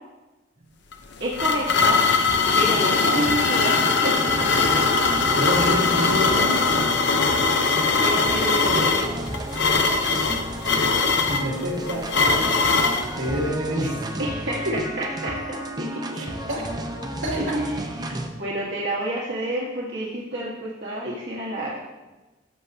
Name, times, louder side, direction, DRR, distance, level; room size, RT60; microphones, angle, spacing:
sound 1, 0.9-13.1, left 4 dB, 60° left, 0.7 m, -21 dB
voice 1, 1.2-2.0 2.6-4.8 7.5-9.1 14.2-16.2 17.4-21.8, right 1 dB, 65° right, -6 dB, 1.4 m, -29 dB
sound 2, 2.3-18.3, right 1 dB, 20° right, 0.7 m, -33 dB
sound 3, 3.3-10.7, equal, 40° left, 3.2 m, -39 dB
voice 2, 5.4-6.9 11.2-14.0 16.1-16.7 17.2-17.7, equal, 85° right, -3 dB, 2.5 m, -28 dB
13.5 x 7.0 x 2.7 m, 1.2 s
head